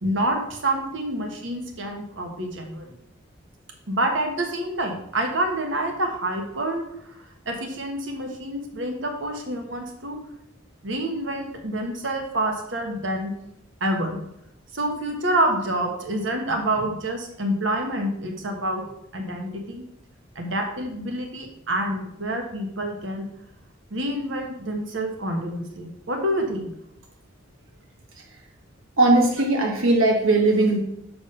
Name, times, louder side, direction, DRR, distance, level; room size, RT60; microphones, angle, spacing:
voice 1, 0.0-2.9 3.9-10.2 10.8-13.3 13.8-14.2 14.7-18.8 19.1-19.8 20.3-23.3 23.9-26.7, right 1 dB, 65° right, 3 dB, 1.3 m, -27 dB
voice 2, 29.0-30.8, right 2 dB, 85° right, 2 dB, 1.1 m, -19 dB
6.8 x 4.8 x 5.3 m, 0.76 s
head